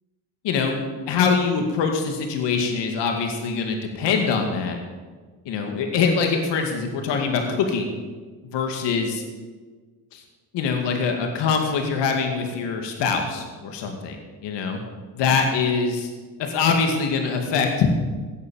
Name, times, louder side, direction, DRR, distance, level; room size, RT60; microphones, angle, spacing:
voice 1, 0.4-0.8 1.1-4.8 5.5-8.0 8.4-9.2 10.1-10.2 10.5-14.2 14.4-14.8 15.1-16.1 16.4-17.9, left 5 dB, 75° left, 3 dB, 2.3 m, -23 dB
17.5 x 7.1 x 8.8 m, 1.4 s
cardioid pair, 85°, 42 cm